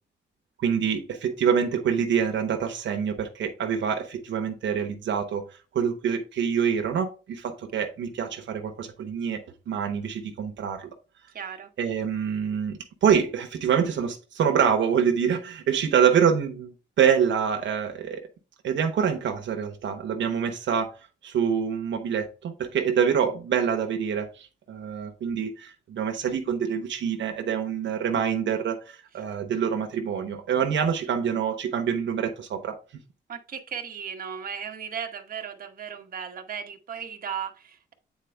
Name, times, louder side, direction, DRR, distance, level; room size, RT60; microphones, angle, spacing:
voice 1, 0.6-10.9 11.8-18.2 18.6-32.8, right 7 dB, 75° right, 0.9 m, -26 dB
voice 2, 11.3-11.7 33.3-37.9, right 7 dB, 45° right, 1.0 m, -36 dB
8.2 x 4.2 x 3.3 m
wide cardioid pair, 150°, 20 cm